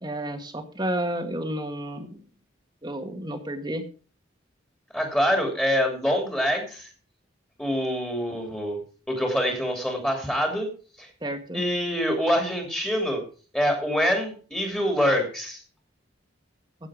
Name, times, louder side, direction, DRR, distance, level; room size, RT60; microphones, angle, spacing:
voice 1, 0.0-2.2 2.8-3.8 11.2-11.6, right 1 dB, 20° right, 6 dB, 1.7 m, -31 dB
voice 2, 4.9-6.9 7.6-8.8 9.1-10.7 11.0-11.1 11.5-13.2 13.5-15.6, equal, 5° left, 2 dB, 2.8 m, -25 dB
16.5 x 7.2 x 5.0 m, 0.39 s
head